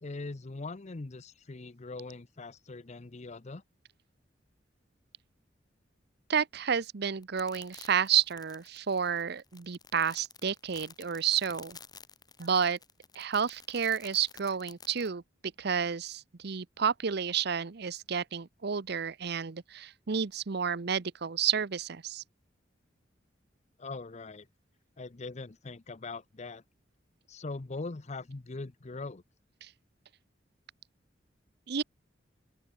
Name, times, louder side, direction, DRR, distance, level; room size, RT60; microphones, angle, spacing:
voice 1, 0.0-3.6 23.8-24.5 25.0-26.6 27.3-29.2, left 3 dB, 40° left, 0.7 m, -41 dB
voice 2, 6.3-11.8 12.4-12.8 13.2-15.2 15.6-22.2 29.6-29.7 31.7-31.8, right 7 dB, 60° right, 0.7 m, -30 dB
sound 1, 7.2-15.1, left 5 dB, 20° left, 4.5 m, -51 dB
open air
head